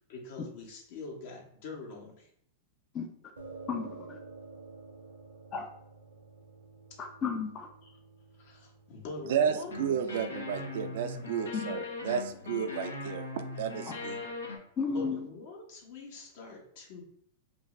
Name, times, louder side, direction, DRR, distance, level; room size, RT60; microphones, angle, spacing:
voice 1, 0.1-2.3 7.8-7.9 8.4-9.8 14.9-17.0, left 3 dB, 60° left, -1 dB, 0.9 m, -44 dB
sound 1, 3.4-12.5, right 3 dB, 90° right, 0.7 m, -52 dB
voice 2, 3.7-4.2 5.5-5.7 7.0-7.7 11.5-11.7 14.8-15.3, left 5 dB, 30° left, 5 dB, 0.4 m, -33 dB
voice 3, 9.3-13.3 13.6-14.2, right 8 dB, 65° right, 9 dB, 0.3 m, -32 dB
sound 2, 9.6-14.6, left 3 dB, 85° left, 0.6 m, -40 dB
2.5 x 2.4 x 3.0 m, 0.68 s
hypercardioid pair, 105°, 0 cm